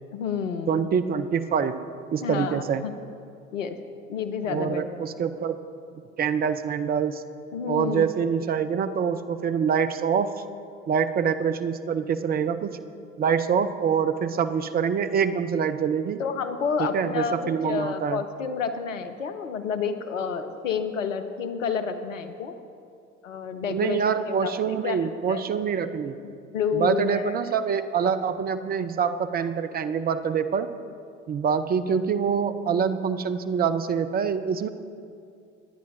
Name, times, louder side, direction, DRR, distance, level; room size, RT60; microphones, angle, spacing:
voice 1, 0.1-0.7 2.2-2.9 3.5-3.8 4.1-5.0 7.5-8.0 16.2-22.6 23.2-24.0 24.4-24.5 24.8-25.0 25.3-25.4 26.2-27.3, left 6 dB, 75° left, 9 dB, 0.8 m, -29 dB
voice 2, 0.7-1.8 2.1-2.8 4.5-5.6 5.9-7.2 7.7-10.3 10.9-12.8 13.2-16.2 16.8-18.2 23.6-26.2 26.7-30.7 31.3-34.7, right 7 dB, 25° right, 10 dB, 0.5 m, -25 dB
20.5 x 9.6 x 2.7 m, 2.4 s
figure-of-eight pair, 65°, 39 cm